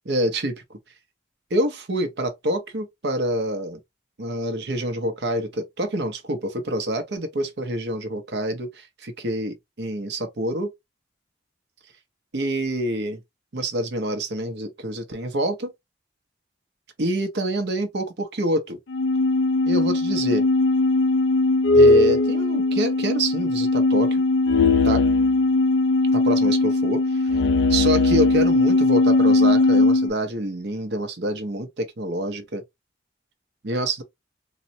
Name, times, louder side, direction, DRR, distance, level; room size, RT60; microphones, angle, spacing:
voice 1, 0.0-0.8 1.5-3.8 4.2-10.7 12.3-13.2 13.5-15.7 17.0-18.8 19.7-20.5 21.7-24.2 24.8-25.0 26.1-27.2 27.7-32.6 33.6-34.0, right 1 dB, 65° right, 0.7 m, -26 dB
sound 1, 18.9-30.1, left 2 dB, 75° left, 0.4 m, -19 dB
3.9 x 2.1 x 2.7 m
head